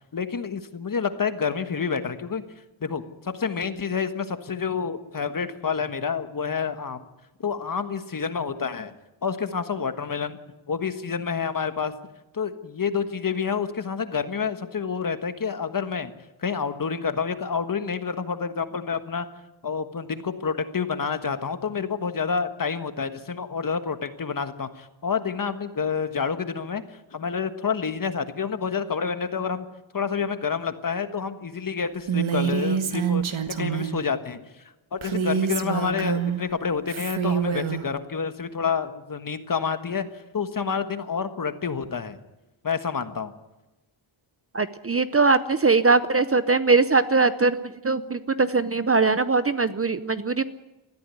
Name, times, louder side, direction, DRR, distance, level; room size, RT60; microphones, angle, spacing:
voice 1, 0.1-2.4 2.8-7.1 7.4-8.9 9.2-10.4 10.7-12.0 12.3-16.1 16.4-19.3 19.6-29.7 29.9-34.4 34.9-42.2 42.6-43.3, left 6 dB, 45° left, 10 dB, 1.4 m, -28 dB
Female speech woman speaking, 32.1-34.0 35.0-36.4 36.9-37.8, right 7 dB, 75° right, 1.8 m, -26 dB
voice 2, 44.5-47.6 47.8-50.4, right 4 dB, 30° right, 13 dB, 0.7 m, -21 dB
20.0 x 14.0 x 9.4 m, 1.0 s
wide cardioid pair, 160°, 48 cm